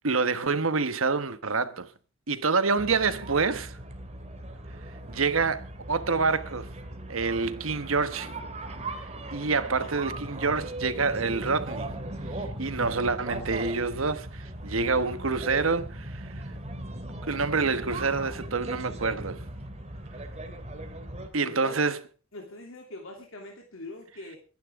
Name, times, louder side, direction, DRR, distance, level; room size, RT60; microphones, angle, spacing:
voice 1, 0.0-1.9 2.3-3.8 5.1-6.7 7.1-8.3 9.3-11.9 12.3-16.4 17.2-19.5 21.3-22.0, right 4 dB, 80° right, 1.2 m, -27 dB
sound 1, 2.8-21.3, right 1 dB, 35° right, 2.6 m, -38 dB
voice 2, 21.4-21.8 22.3-24.4, left 2 dB, 70° left, 3.1 m, -42 dB
24.5 x 11.0 x 3.7 m
head